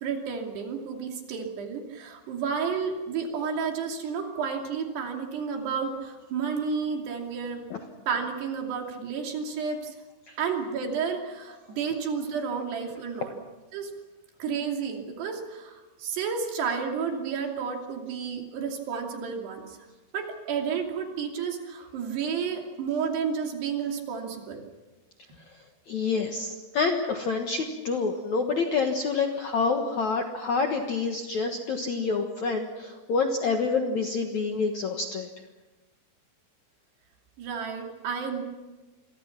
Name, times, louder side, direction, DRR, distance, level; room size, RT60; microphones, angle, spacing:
voice 1, 0.0-7.6 8.1-9.9 10.4-13.3 13.7-13.9 14.4-19.8 20.1-24.6 37.4-38.4, right 6 dB, 65° right, 2 dB, 4.7 m, -31 dB
voice 2, 25.9-35.3, left 4 dB, 60° left, 3 dB, 2.0 m, -27 dB
28.5 x 24.0 x 6.0 m, 1.2 s
omnidirectional pair, 5.2 m